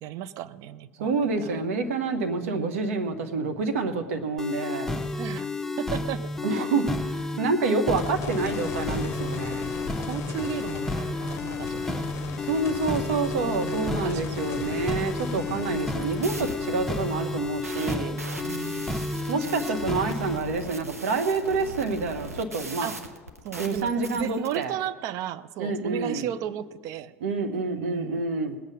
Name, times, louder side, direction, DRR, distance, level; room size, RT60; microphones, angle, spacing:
voice 1, 0.0-1.6 2.4-2.7 5.2-5.5 5.8-6.3 9.6-12.1 13.4-14.5 15.7-16.0 18.4-20.1 22.8-23.0 23.4-27.2 27.7-28.3, right 11 dB, 45° right, 13 dB, 0.6 m, -36 dB
voice 2, 1.0-4.9 6.4-9.7 12.4-18.2 19.3-22.9 23.6-24.7 25.6-26.2 27.2-28.6, right 3 dB, 65° right, 6 dB, 1.3 m, -28 dB
sound 1, 4.4-20.4, left 2 dB, 5° left, 1.0 m, -31 dB
sound 2, 8.0-20.3 20.8-20.9 24.2-24.3, left 8 dB, 35° left, 0.9 m, -39 dB
sound 3, 15.8-24.6, right 1 dB, 90° right, 1.0 m, -40 dB
19.5 x 8.2 x 5.5 m, 1.5 s
figure-of-eight pair, 75°, 8 cm